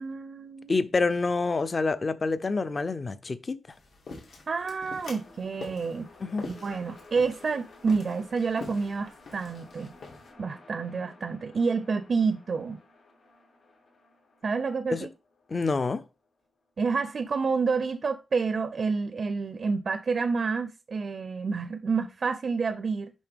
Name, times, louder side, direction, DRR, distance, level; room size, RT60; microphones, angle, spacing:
voice 1, 0.0-0.8 4.5-6.1 6.5-9.9 10.4-12.8 14.4-15.1 16.8-23.1, right 5 dB, 45° right, 0.5 m, -29 dB
voice 2, 0.7-3.6 6.2-6.5 14.9-15.1 15.5-16.0, left 3 dB, 30° left, 0.5 m, -27 dB
sound 1, 3.7-10.3, left 3 dB, 85° left, 2.6 m, -45 dB
sound 2, 4.6-16.7, left 3 dB, 70° left, 4.5 m, -54 dB
10.5 x 3.5 x 3.5 m
wide cardioid pair, 160°, 0 cm